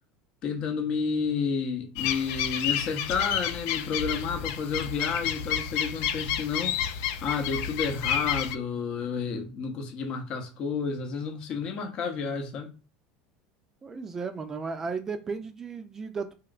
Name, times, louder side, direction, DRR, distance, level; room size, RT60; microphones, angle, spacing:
voice 1, 0.4-6.8 7.2-12.7, left 5 dB, 50° left, 0.7 m, -31 dB
sound 1, 2.0-8.6, left 9 dB, 70° left, 0.4 m, -30 dB
voice 2, 13.8-16.3, right 4 dB, 25° right, 0.4 m, -34 dB
3.0 x 3.0 x 2.3 m
supercardioid pair, 105°, 2 cm